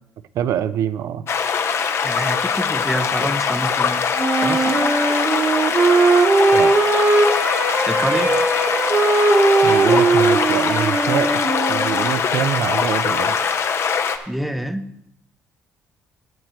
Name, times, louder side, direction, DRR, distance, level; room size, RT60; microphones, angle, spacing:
voice 1, 0.3-1.2 6.5-6.7 9.6-11.4 11.7-13.4, right 9 dB, 70° right, 14 dB, 0.5 m, -24 dB
sound 1, 1.3-14.2, left 6 dB, 55° left, 0.7 m, -22 dB
voice 2, 2.0-4.0 4.4-4.8 7.9-8.3 14.3-14.9, equal, ahead, 10 dB, 0.6 m, -26 dB
Wind instrument woodwind instrument, 4.2-12.2, right 3 dB, 30° right, 1.1 m, -18 dB
12.0 x 7.7 x 3.1 m, 0.76 s
cardioid pair, 85°, 5 cm